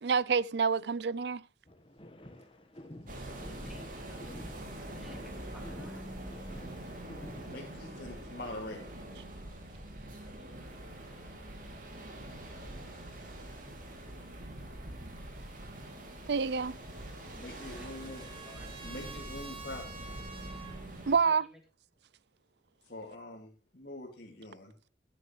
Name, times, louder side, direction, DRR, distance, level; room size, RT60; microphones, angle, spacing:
voice 1, 0.0-1.4 16.3-16.8 21.1-21.5, right 5 dB, 65° right, 0.5 m, -28 dB
sound 1, 1.7-7.7, left 1 dB, 30° left, 1.4 m, -51 dB
sound 2, 3.1-21.2, right 1 dB, 45° right, 2.9 m, -44 dB
voice 2, 3.6-6.1 17.7-18.7 21.0-21.6, equal, ahead, 2.8 m, -56 dB
voice 3, 7.4-8.9 17.2-18.3 18.8-20.0 22.8-24.7, left 1 dB, 55° left, 2.4 m, -44 dB
Trumpet, 16.9-20.8, right 4 dB, 30° right, 2.1 m, -49 dB
16.0 x 9.9 x 3.2 m
head